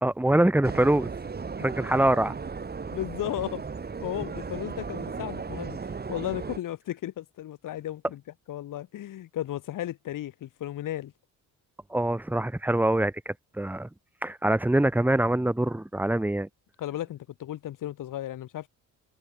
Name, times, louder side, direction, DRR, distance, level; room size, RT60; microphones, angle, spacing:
voice 1, 0.0-1.1 1.6-2.3 11.9-13.9 14.2-16.5, right 1 dB, 5° right, 0.8 m, -24 dB
sound 1, 0.6-6.6, right 5 dB, 25° right, 1.4 m, -36 dB
voice 2, 2.9-3.6 4.0-8.2 8.5-11.1 16.8-18.7, left 13 dB, 60° left, 1.2 m, -35 dB
supercardioid pair, 65°, 37 cm